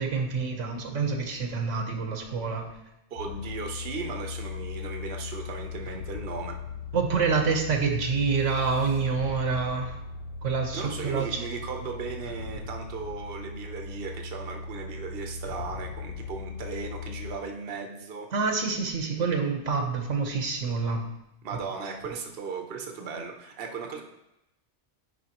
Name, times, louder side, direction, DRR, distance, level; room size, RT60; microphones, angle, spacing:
voice 1, 0.0-2.7 6.9-10.0 10.4-11.4 18.3-21.0, right 5 dB, 85° right, 3 dB, 1.3 m, -27 dB
voice 2, 3.1-6.6 10.7-18.3 21.4-24.0, right 5 dB, 55° right, 3 dB, 1.0 m, -37 dB
sound 1, 3.2-17.4, left 5 dB, 80° left, 1.2 m, -38 dB
9.3 x 5.0 x 2.9 m, 0.89 s
omnidirectional pair, 1.2 m